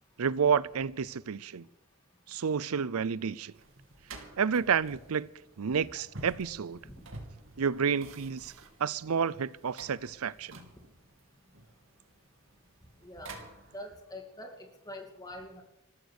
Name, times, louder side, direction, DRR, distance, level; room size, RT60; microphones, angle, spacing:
voice 1, 0.2-1.7 2.3-3.5 4.4-5.3 5.6-6.8 7.6-8.5 8.8-10.5, right 6 dB, 90° right, 0.5 m, -30 dB
sound 1, 3.5-14.0, right 2 dB, 65° right, 2.8 m, -50 dB
voice 2, 13.0-13.3 13.7-15.6, left 1 dB, 15° left, 2.5 m, -44 dB
14.5 x 13.5 x 6.6 m
head